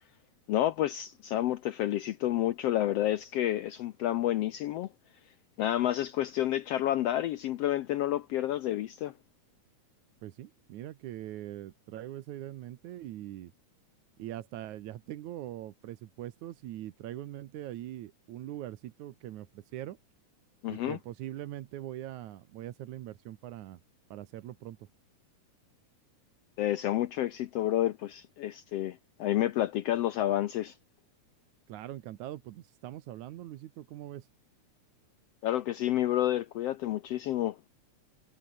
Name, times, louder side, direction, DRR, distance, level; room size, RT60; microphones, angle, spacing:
voice 1, 0.5-4.9 5.6-9.1 20.6-21.0 26.6-30.8 35.4-37.7, left 13 dB, 75° left, 1.5 m, -30 dB
voice 2, 10.2-13.5 14.2-20.0 20.7-23.8 24.1-24.9 31.7-34.3, right 13 dB, 75° right, 2.4 m, -42 dB
omnidirectional pair, 3.5 m